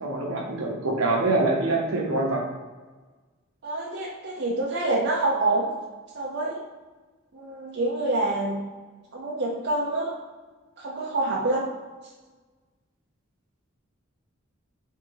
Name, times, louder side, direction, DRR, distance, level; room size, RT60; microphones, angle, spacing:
voice 1, 0.0-2.4, right 2 dB, 75° right, 0 dB, 0.9 m, -25 dB
voice 2, 3.6-5.7 6.1-6.6 7.3-8.6 9.1-10.1 10.8-11.7, right 2 dB, 55° right, -5 dB, 0.6 m, -26 dB
3.6 x 2.7 x 4.6 m, 1.3 s
head